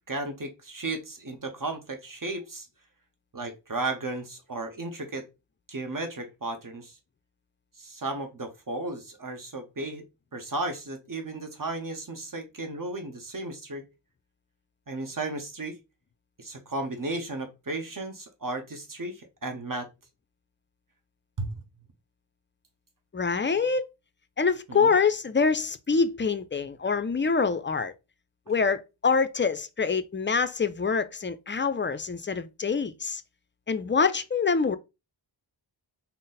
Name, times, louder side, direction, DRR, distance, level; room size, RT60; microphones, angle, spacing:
voice 1, 0.1-2.7 3.3-5.2 5.7-6.9 7.8-10.0 10.3-13.8 14.9-15.8 16.4-19.9 21.4-21.5 24.7-24.9, right 2 dB, 45° right, 0.8 m, -34 dB
voice 2, 23.1-23.9 24.4-27.9 28.5-33.2 33.7-34.8, left 5 dB, 25° left, 0.3 m, -25 dB
3.9 x 2.0 x 3.9 m
wide cardioid pair, 50°, 47 cm